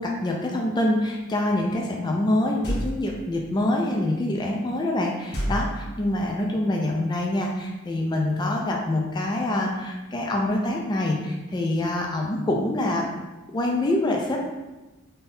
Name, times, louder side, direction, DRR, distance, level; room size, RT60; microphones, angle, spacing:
voice 1, 0.0-13.0 13.5-14.4, left 1 dB, 20° left, 0 dB, 0.3 m, -25 dB
sound 1, 2.6-3.3 5.3-6.3, equal, 50° left, 0.8 m, -29 dB
3.7 x 2.7 x 2.7 m, 1.1 s
head